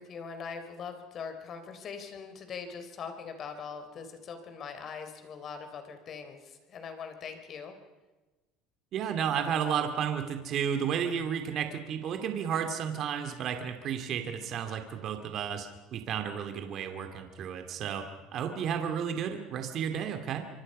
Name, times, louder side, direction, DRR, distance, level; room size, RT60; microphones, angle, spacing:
voice 1, 0.0-7.7, left 6 dB, 40° left, 7 dB, 3.8 m, -42 dB
voice 2, 8.9-15.7 15.9-18.1 18.3-20.4, right 8 dB, 50° right, 6 dB, 2.5 m, -32 dB
25.5 x 25.0 x 5.6 m, 1.2 s
supercardioid pair, 125°, 0 cm